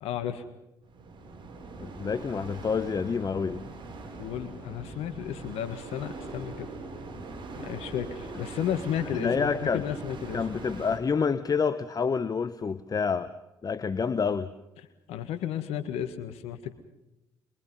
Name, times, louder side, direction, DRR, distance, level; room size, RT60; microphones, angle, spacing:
voice 1, 0.0-0.4 4.2-6.7 7.6-10.5 15.1-16.7, left 10 dB, 70° left, 10 dB, 1.7 m, -33 dB
sound 1, 0.8-11.0, right 3 dB, 50° right, 6.6 m, -41 dB
voice 2, 1.8-3.6 9.2-9.8 10.3-13.3 13.6-14.5, left 5 dB, 35° left, 13 dB, 1.0 m, -28 dB
26.0 x 23.0 x 5.6 m, 0.96 s
hypercardioid pair, 50°, 11 cm